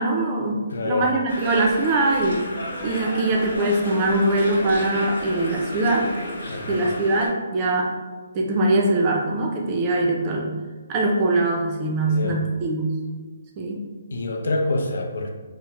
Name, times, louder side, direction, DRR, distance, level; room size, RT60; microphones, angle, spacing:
voice 1, 0.0-2.4 2.8-6.1 6.7-7.9 8.3-10.5 10.9-12.9 13.6-13.8, right 2 dB, 20° right, 0 dB, 0.4 m, -22 dB
voice 2, 0.7-1.1 6.5-6.9 12.0-12.4 14.1-15.3, left 2 dB, 65° left, 3 dB, 0.5 m, -26 dB
sound 1, 1.3-7.3, left 1 dB, 85° left, 1.4 m, -32 dB
4.3 x 2.0 x 2.9 m, 1.3 s
hypercardioid pair, 170°, 0 cm